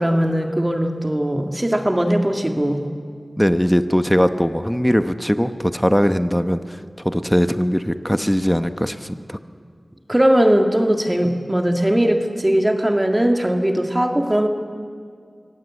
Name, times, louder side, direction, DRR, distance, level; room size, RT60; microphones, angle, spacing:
voice 1, 0.0-2.9 10.1-14.5, right 1 dB, 20° right, 3 dB, 2.1 m, -19 dB
voice 2, 3.4-6.8 7.0-9.4, equal, 5° left, 9 dB, 1.1 m, -20 dB
24.0 x 17.5 x 8.4 m, 2.1 s
cardioid pair, 40°, 0 cm